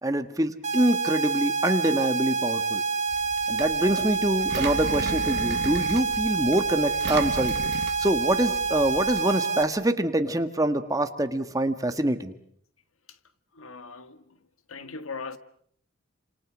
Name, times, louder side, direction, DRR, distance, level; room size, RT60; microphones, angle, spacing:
voice 1, 0.0-2.8 3.5-7.6 8.0-12.3, right 1 dB, 15° right, 1.6 m, -25 dB
sound 1, 0.6-9.6, right 4 dB, 30° right, 2.3 m, -27 dB
Engine, 3.1-9.2, right 3 dB, 50° right, 1.6 m, -36 dB
voice 2, 13.5-14.4 14.7-15.4, left 4 dB, 80° left, 1.7 m, -39 dB
29.5 x 27.5 x 6.3 m
head